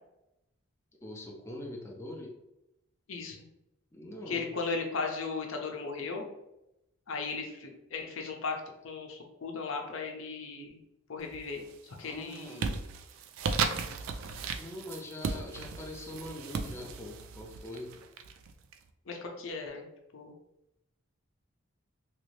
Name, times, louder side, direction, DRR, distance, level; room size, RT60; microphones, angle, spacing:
voice 1, 1.0-2.3 3.9-4.5 12.0-12.6 14.6-17.9, left 1 dB, 15° left, -1 dB, 0.5 m, -43 dB
voice 2, 3.1-3.4 4.3-6.2 7.1-8.6 8.8-10.8 11.1-12.8 19.1-19.9 20.1-20.3, left 4 dB, 75° left, 2 dB, 0.6 m, -37 dB
sound 1, 11.3-11.7 12.1-18.7, right 5 dB, 90° right, 0.4 m, -36 dB
3.0 x 2.6 x 3.1 m, 0.88 s
head